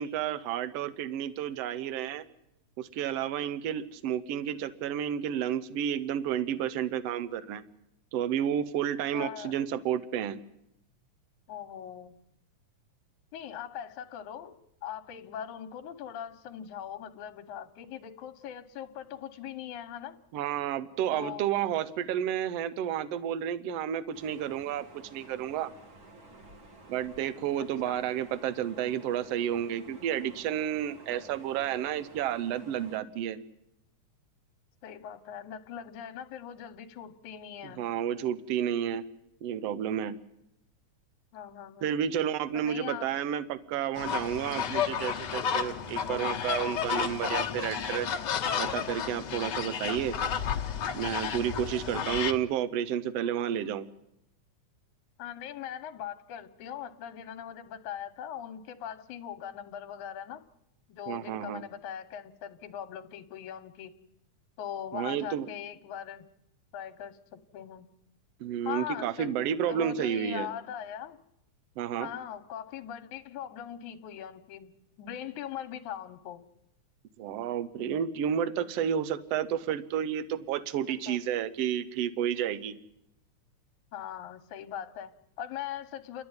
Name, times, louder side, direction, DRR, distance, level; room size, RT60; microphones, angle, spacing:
voice 1, 0.0-2.2 2.8-7.6 8.1-10.4 20.3-24.8 25.1-25.7 26.9-33.4 37.8-39.0 39.4-40.2 41.8-48.1 48.6-50.1 50.9-53.9 61.1-61.6 64.9-65.5 68.4-70.5 71.8-72.1 77.2-82.8, right 9 dB, 65° right, 14 dB, 1.8 m, -31 dB
voice 2, 9.1-9.5 11.5-12.2 13.3-14.5 14.8-20.2 21.1-21.5 27.6-28.1 31.1-31.3 34.8-37.8 41.3-42.0 42.5-43.1 51.9-52.1 55.2-60.4 60.9-63.9 64.6-66.3 66.7-67.9 68.7-69.3 69.7-71.2 72.0-74.7 75.0-76.4 80.9-81.2 83.9-86.2, left 9 dB, 75° left, 8 dB, 2.3 m, -41 dB
sound 1, 24.1-33.0, right 2 dB, 45° right, 2.1 m, -52 dB
sound 2, 44.0-52.3, left 7 dB, 55° left, 1.2 m, -32 dB
30.0 x 12.0 x 9.6 m, 0.85 s
omnidirectional pair, 3.5 m